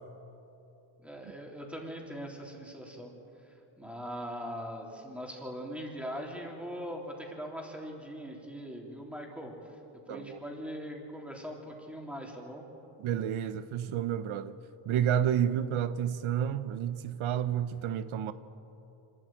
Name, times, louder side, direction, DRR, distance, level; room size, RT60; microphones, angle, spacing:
voice 1, 1.0-3.1 3.4-9.5 10.1-12.6, equal, 5° right, 3.5 m, -41 dB
voice 2, 10.1-10.4 13.0-14.5 14.9-18.3, right 9 dB, 80° right, 0.8 m, -30 dB
25.5 x 13.5 x 8.9 m
cardioid pair, 125°, 48 cm